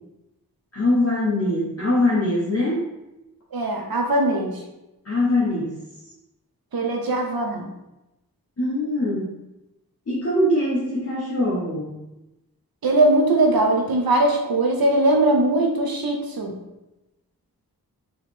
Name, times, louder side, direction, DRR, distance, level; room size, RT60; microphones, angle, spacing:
voice 1, 0.7-2.8 5.0-5.7 8.6-9.3 10.1-12.0, left 1 dB, 40° left, -7 dB, 1.1 m, -22 dB
voice 2, 3.5-4.6 6.7-7.7 12.8-16.6, right 2 dB, 75° right, 1 dB, 0.9 m, -20 dB
4.6 x 3.1 x 3.6 m, 0.96 s
wide cardioid pair, 75°, 36 cm